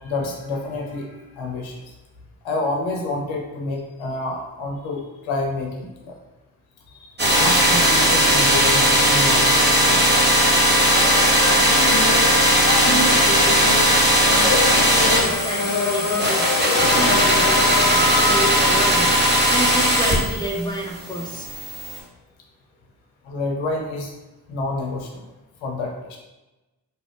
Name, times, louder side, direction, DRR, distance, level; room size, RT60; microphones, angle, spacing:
voice 1, 0.0-1.8 2.4-6.1 6.9-10.1 23.2-24.1 24.5-25.3 25.6-26.2, left 2 dB, 70° left, 1 dB, 0.8 m, -28 dB
sound 1, 7.2-20.6 21.0-22.0, equal, 20° right, 1.1 m, -18 dB
sound 2, 10.9-18.6, left 4 dB, 45° left, 0.4 m, -25 dB
voice 2, 12.8-21.5, right 1 dB, 10° left, -2 dB, 0.7 m, -30 dB
2.5 x 2.2 x 3.4 m, 1.0 s
hypercardioid pair, 40°, 49 cm